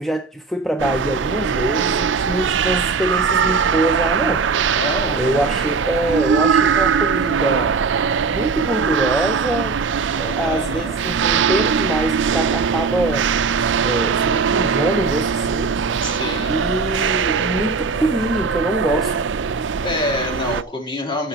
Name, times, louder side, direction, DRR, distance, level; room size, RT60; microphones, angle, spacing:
voice 1, 0.0-4.5 5.2-7.8 8.3-9.8 10.1-13.3 13.8-15.8 16.4-19.2, equal, ahead, 0.5 m, -24 dB
sound 1, 0.8-20.6, right 7 dB, 80° right, 0.4 m, -21 dB
voice 2, 4.7-5.2 10.2-11.0 16.0-16.5 19.8-21.3, left 2 dB, 25° left, 3.2 m, -26 dB
14.0 x 7.6 x 2.9 m
head